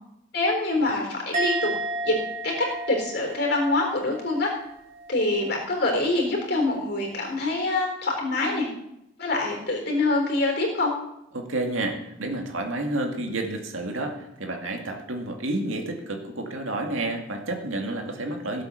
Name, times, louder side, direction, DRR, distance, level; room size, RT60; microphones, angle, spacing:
voice 1, 0.3-1.7 2.0-2.2 2.4-2.5 2.9-4.5 5.1-8.7 9.2-10.9, left 2 dB, 50° left, 1 dB, 4.0 m, -25 dB
Musical instrument, 1.3-4.7 5.0-5.4, right 2 dB, 35° right, 4.7 m, -32 dB
voice 2, 11.3-18.6, right 2 dB, 85° right, 3 dB, 2.2 m, -30 dB
16.5 x 8.1 x 6.6 m, 0.84 s
head